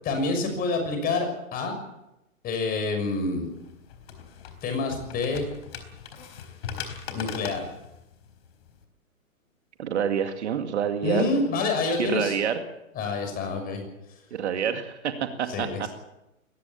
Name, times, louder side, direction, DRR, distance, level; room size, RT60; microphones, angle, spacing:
voice 1, 0.0-1.8 2.4-3.5 4.6-5.5 7.1-7.6 11.0-12.4 12.9-13.8 15.5-15.9, left 3 dB, 20° left, 5 dB, 6.2 m, -27 dB
sound 1, 3.5-8.8, left 7 dB, 45° left, 4.3 m, -40 dB
voice 2, 9.8-11.3 12.0-12.6 14.3-15.9, right 8 dB, 55° right, 7 dB, 2.4 m, -27 dB
22.0 x 19.0 x 7.1 m, 0.88 s
figure-of-eight pair, 125°, 41 cm